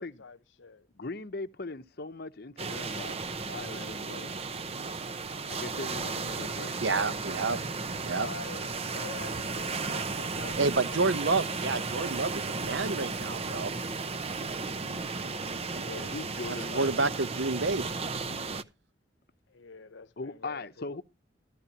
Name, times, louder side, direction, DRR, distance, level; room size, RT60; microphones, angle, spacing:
voice 1, 0.0-0.9 8.0-11.8 15.6-16.1 19.5-21.0, left 4 dB, 85° left, 0.8 m, -47 dB
voice 2, 0.9-4.3 5.5-7.2 15.3-16.9 20.2-21.0, left 3 dB, 55° left, 0.8 m, -40 dB
sound 1, 2.6-18.6, right 4 dB, 35° right, 0.7 m, -34 dB
voice 3, 6.8-7.6 8.0-8.3 10.6-13.7 16.7-17.8, right 3 dB, 75° right, 0.8 m, -29 dB
13.5 x 12.5 x 2.8 m
head